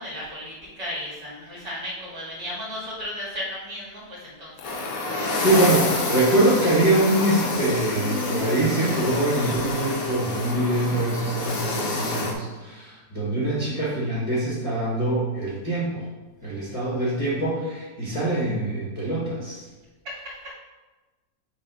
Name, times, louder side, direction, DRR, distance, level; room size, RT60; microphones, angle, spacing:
voice 1, 0.0-4.7 16.4-16.8 20.0-20.5, equal, 55° right, -7 dB, 2.6 m, -35 dB
sound 1, 4.6-9.9, left 5 dB, 85° left, 1.3 m, -35 dB
sound 2, 4.6-12.3, left 2 dB, 60° left, 1.1 m, -28 dB
voice 2, 5.4-16.1 16.4-19.6, right 1 dB, 25° left, -8 dB, 1.0 m, -24 dB
6.8 x 2.7 x 5.3 m, 1.2 s
omnidirectional pair, 2.0 m